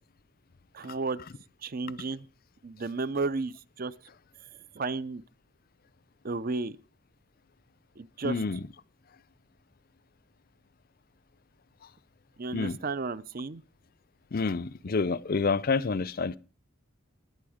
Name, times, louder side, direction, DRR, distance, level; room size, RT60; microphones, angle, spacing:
voice 1, 0.7-1.2 1.6-2.3 2.6-3.9 4.7-5.2 6.2-6.8 8.0-8.4 12.4-13.6, right 3 dB, 40° right, 0.5 m, -33 dB
voice 2, 8.2-8.6 12.5-12.8 14.3-16.4, left 4 dB, 45° left, 0.5 m, -28 dB
20.0 x 7.7 x 5.0 m
head